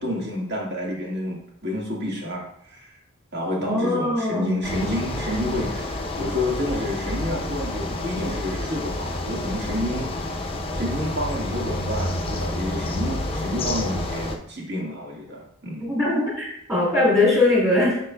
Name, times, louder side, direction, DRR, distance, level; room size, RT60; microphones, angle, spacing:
voice 1, 0.0-2.9 3.3-10.3 10.7-15.9, left 1 dB, 55° right, -3 dB, 1.7 m, -29 dB
voice 2, 3.6-4.7 15.8-18.0, left 2 dB, 15° right, -5 dB, 2.4 m, -21 dB
sound 1, 4.6-14.4, left 1 dB, 25° left, 0.6 m, -29 dB
8.2 x 5.7 x 2.2 m, 0.71 s
head